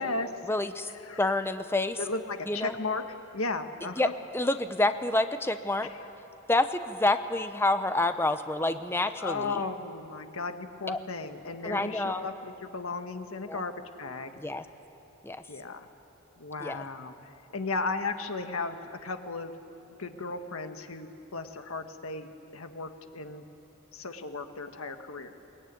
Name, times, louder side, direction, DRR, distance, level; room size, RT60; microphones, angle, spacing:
voice 1, 0.5-0.9 1.2-2.0 2.5-2.8 4.0-4.1 4.3-5.9 6.5-9.6 10.9-11.0 11.6-12.3 13.5-13.6 14.4-14.7 15.2-15.4 16.6-16.8, left 2 dB, 10° left, 9 dB, 0.8 m, -28 dB
voice 2, 2.0-3.0 3.3-4.1 9.2-13.7 14.0-14.3 15.5-15.9 16.4-17.1 17.5-19.5 20.0-23.4 23.9-25.3, left 3 dB, 80° left, 7 dB, 1.5 m, -35 dB
22.0 x 20.0 x 9.6 m, 2.9 s
head